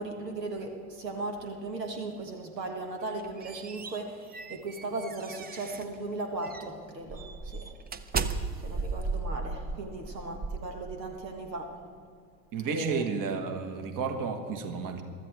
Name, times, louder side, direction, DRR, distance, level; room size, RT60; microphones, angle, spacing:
voice 1, 0.0-7.6 8.6-11.7 12.6-13.0, right 2 dB, 80° right, 3 dB, 1.5 m, -37 dB
sound 1, 3.0-6.0 6.4-6.7 7.1-11.3, right 4 dB, 20° right, 0.7 m, -36 dB
voice 2, 12.5-15.0, right 5 dB, 40° right, 7 dB, 1.6 m, -32 dB
23.0 x 13.5 x 3.4 m, 2.3 s
figure-of-eight pair, 65°, 48 cm